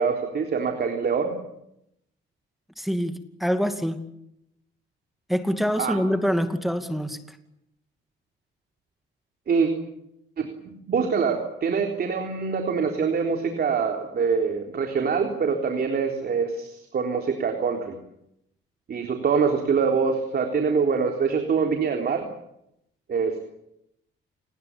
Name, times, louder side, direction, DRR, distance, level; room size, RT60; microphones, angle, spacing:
voice 1, 0.0-1.3 5.8-6.0 9.5-9.7 10.4-10.5 10.9-18.0 18.9-22.2 23.1-23.4, right 5 dB, 55° right, 4 dB, 3.7 m, -24 dB
voice 2, 2.8-4.0 5.3-7.4, equal, ahead, 8 dB, 2.4 m, -25 dB
28.0 x 20.0 x 8.7 m, 0.82 s
cardioid pair, 90°, 20 cm